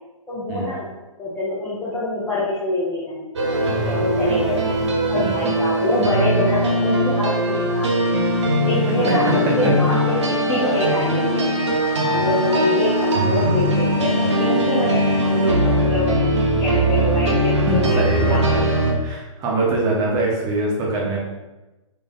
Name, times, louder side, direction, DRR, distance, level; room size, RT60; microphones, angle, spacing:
voice 1, 0.3-0.9 1.2-4.7 5.1-8.3 8.6-10.0 10.3-11.5 12.1-16.2 16.6-18.8, left 2 dB, 5° left, -9 dB, 0.4 m, -25 dB
sound 1, 3.4-18.9, right 1 dB, 55° right, 0.7 m, -20 dB
voice 2, 8.9-9.3 12.0-12.2 17.6-18.7 19.0-21.2, right 2 dB, 20° right, -3 dB, 0.8 m, -23 dB
3.6 x 3.3 x 2.6 m, 1.0 s
figure-of-eight pair, 125°, 18 cm